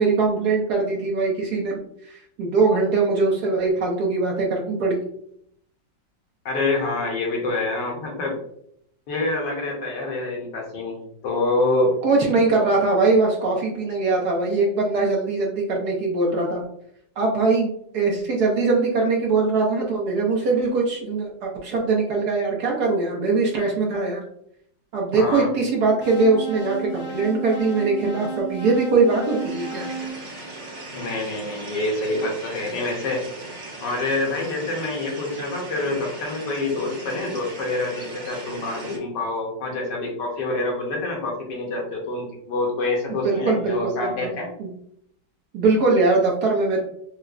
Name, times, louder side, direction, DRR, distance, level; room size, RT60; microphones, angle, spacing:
voice 1, 0.0-1.8 2.1-5.0 12.0-16.6 17.2-24.2 24.9-29.9 43.1-44.3 44.6-44.7 45.5-46.8, right 3 dB, 65° right, -2 dB, 1.1 m, -21 dB
voice 2, 6.4-8.4 9.1-11.0 11.2-12.0 25.1-25.5 30.9-33.2 33.8-44.5, left 2 dB, 70° left, 0 dB, 1.4 m, -26 dB
sound 1, 26.0-31.1, right 3 dB, 85° left, 0.7 m, -33 dB
sound 2, 29.1-39.0, right 2 dB, 50° right, 1.3 m, -38 dB
4.7 x 2.1 x 2.4 m, 0.71 s
omnidirectional pair, 2.1 m